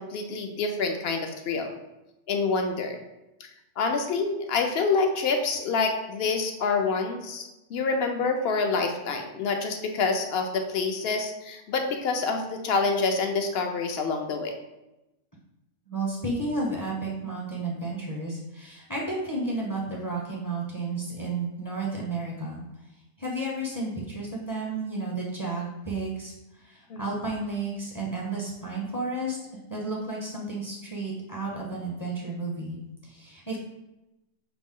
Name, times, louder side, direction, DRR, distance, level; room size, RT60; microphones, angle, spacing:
voice 1, 0.0-1.7 2.3-3.0 3.4-3.5 3.8-14.5 26.9-27.0, left 4 dB, 65° left, 4 dB, 0.8 m, -27 dB
voice 2, 15.9-22.6 23.2-29.4 29.7-33.6, right 2 dB, 20° left, -4 dB, 0.6 m, -32 dB
5.8 x 2.0 x 3.6 m, 0.96 s
omnidirectional pair, 1.2 m